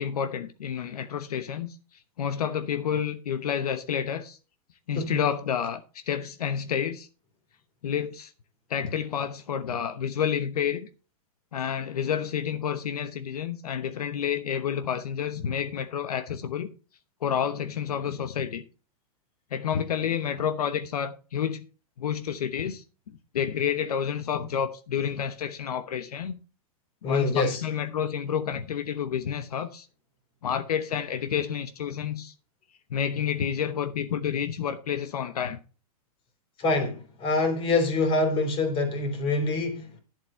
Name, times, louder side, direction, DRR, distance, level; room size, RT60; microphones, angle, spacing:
voice 1, 0.0-4.4 4.9-7.1 7.8-8.3 8.7-10.9 11.5-16.7 17.2-18.6 19.5-21.6 22.0-22.8 23.3-26.3 27.0-29.9 30.4-32.3 32.9-35.6, left 8 dB, 85° left, 1.1 m, -29 dB
voice 2, 27.0-27.6 36.6-40.0, left 3 dB, 30° left, 3.4 m, -25 dB
11.5 x 7.4 x 4.5 m
hypercardioid pair, 140°, 19 cm